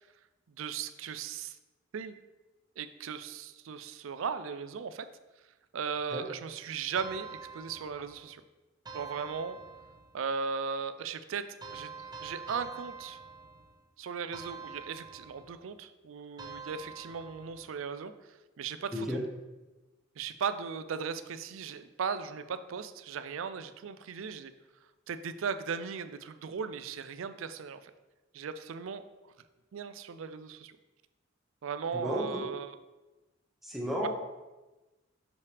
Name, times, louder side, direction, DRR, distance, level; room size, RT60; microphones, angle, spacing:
voice 1, 0.6-1.6 1.9-2.1 2.8-5.1 5.7-8.4 8.9-9.6 10.1-13.2 14.0-18.1 18.6-19.2 20.2-24.5 25.1-27.9 28.3-29.0 29.7-30.8 31.6-32.7, right 6 dB, 75° right, 11 dB, 0.4 m, -37 dB
sound 1, 7.0-8.3 8.9-10.2 11.6-13.8 14.3-15.6 16.4-17.7, right 5 dB, 20° right, 0.7 m, -46 dB
voice 2, 31.9-32.4 33.6-34.1, equal, ahead, -2 dB, 1.0 m, -33 dB
6.5 x 5.5 x 3.4 m, 1.1 s
head